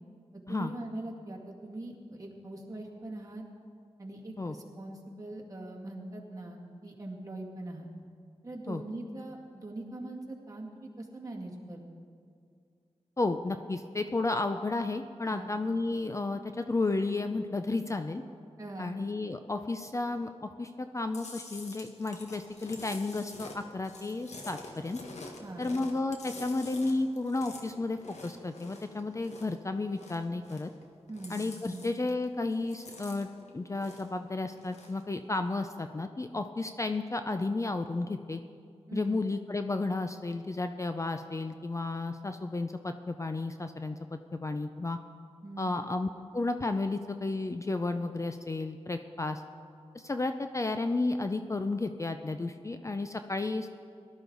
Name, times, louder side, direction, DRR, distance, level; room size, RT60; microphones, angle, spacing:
voice 1, 0.3-3.4 4.0-7.9 8.4-11.8 15.3-15.5 18.6-18.9 25.4-25.7 31.1-31.4 31.7-31.8 38.9-39.2 45.4-45.7, right 2 dB, 30° right, -2 dB, 2.1 m, -42 dB
voice 2, 13.2-18.2 18.8-25.0 25.6-30.7 31.3-38.4 38.9-45.0 45.6-49.4 49.9-53.7, left 3 dB, 25° left, 8 dB, 0.5 m, -32 dB
Chewing mastication, 21.1-29.6 29.9-30.8 31.1-32.2 32.5-34.2 34.5-35.0, left 3 dB, 85° left, 1.5 m, -48 dB
18.0 x 12.5 x 3.9 m, 2.3 s
wide cardioid pair, 85°, 11 cm